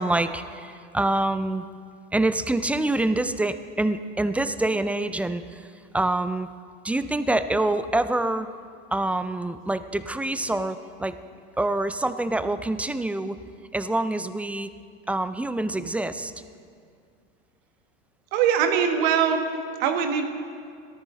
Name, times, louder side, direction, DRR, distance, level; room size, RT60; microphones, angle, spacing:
voice 1, 0.0-1.6 2.1-5.6 5.9-6.5 6.8-8.5 8.9-11.2 11.6-13.4 13.7-14.7 15.1-16.3, right 2 dB, 5° right, 11 dB, 0.3 m, -26 dB
voice 2, 18.3-19.5 19.8-20.2, right 7 dB, 65° right, 5 dB, 1.5 m, -22 dB
17.5 x 13.0 x 3.7 m, 2.2 s
hypercardioid pair, 105°, 32 cm